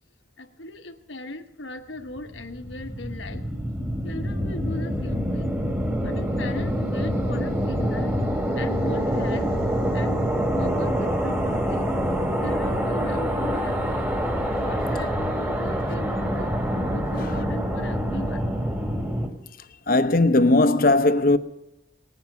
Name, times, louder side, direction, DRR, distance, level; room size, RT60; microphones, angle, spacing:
voice 1, 0.4-3.4 4.0-5.5 6.0-8.1 8.5-9.5 9.9-11.9 12.4-13.9 14.6-18.4, left 2 dB, 85° left, 1.2 m, -38 dB
sound 1, 2.2-19.3, equal, 15° right, 1.8 m, -26 dB
voice 2, 19.9-21.4, left 2 dB, 50° left, 0.8 m, -18 dB
19.5 x 9.5 x 6.8 m
head